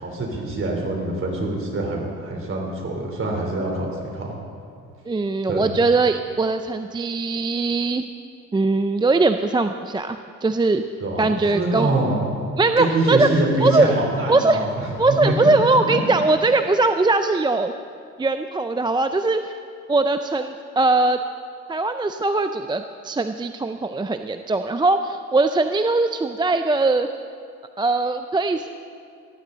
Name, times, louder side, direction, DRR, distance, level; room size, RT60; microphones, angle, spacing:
voice 1, 0.0-4.4 5.5-5.7 11.0-12.2 12.8-14.9 15.2-15.5 15.8-16.0, right 2 dB, 45° right, 0 dB, 3.7 m, -24 dB
voice 2, 5.1-8.1 8.5-10.8 11.2-11.9 12.6-13.3 13.6-13.9 14.3-14.6 15.0-17.7 18.2-19.5 19.9-21.2 21.7-27.1 27.8-28.7, right 3 dB, 15° right, 8 dB, 0.4 m, -20 dB
17.5 x 14.0 x 4.0 m, 2.3 s
cardioid pair, 90°, 30 cm